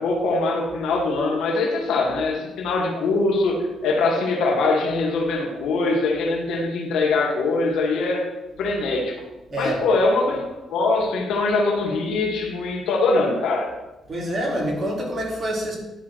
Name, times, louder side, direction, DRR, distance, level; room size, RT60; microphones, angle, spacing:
voice 1, 0.0-8.3 8.6-9.2 9.6-10.4 10.7-13.7, left 3 dB, 80° left, 1 dB, 1.9 m, -22 dB
voice 2, 14.1-15.8, equal, 35° right, -2 dB, 3.1 m, -26 dB
11.0 x 3.9 x 6.3 m, 1.0 s
cardioid pair, 90°, 0 cm